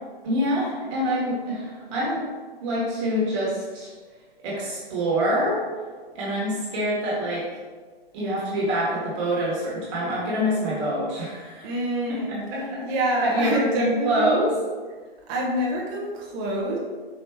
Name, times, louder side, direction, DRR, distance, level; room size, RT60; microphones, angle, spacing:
voice 1, 0.2-2.2 2.6-3.9 4.4-5.6 6.1-7.5 8.1-11.7 12.5-13.0 13.2-14.5, equal, 30° right, -6 dB, 1.2 m, -25 dB
voice 2, 11.6-12.5 12.8-14.5 15.3-16.8, right 1 dB, 15° right, -2 dB, 0.4 m, -26 dB
4.4 x 2.7 x 3.4 m, 1.4 s
hypercardioid pair, 135°, 30 cm